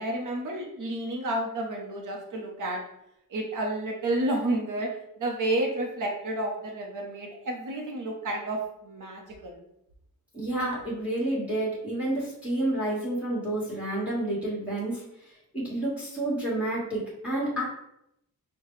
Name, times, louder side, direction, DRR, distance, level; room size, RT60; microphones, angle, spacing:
voice 1, 0.0-2.8 3.3-9.6, right 1 dB, 55° right, 1 dB, 0.7 m, -31 dB
voice 2, 10.3-15.0 15.5-17.6, right 1 dB, 5° right, -5 dB, 1.3 m, -29 dB
5.6 x 2.2 x 3.1 m, 0.79 s
wide cardioid pair, 140°, 37 cm